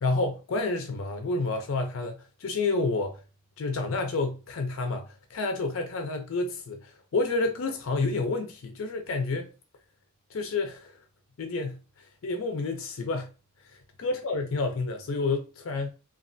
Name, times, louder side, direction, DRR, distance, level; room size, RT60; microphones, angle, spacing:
voice 1, 0.0-3.2 3.6-9.5 10.3-10.9 11.4-11.8 12.2-13.3 14.0-15.9, left 3 dB, 70° left, 0.4 m, -29 dB
3.2 x 2.3 x 2.5 m
head